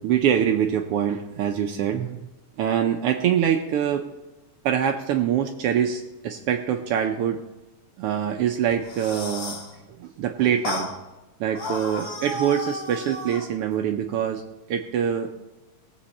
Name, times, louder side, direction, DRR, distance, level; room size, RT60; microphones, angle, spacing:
voice 1, 0.0-2.2 2.6-4.1 4.6-7.4 8.0-9.6 10.0-10.9 11.4-14.4 14.7-15.3, right 9 dB, 85° right, 4 dB, 1.3 m, -24 dB
sound 1, 8.7-9.7 10.6-10.9 11.5-13.5, left 2 dB, 85° left, 3.1 m, -33 dB
18.5 x 8.0 x 4.2 m, 1.0 s
omnidirectional pair, 3.4 m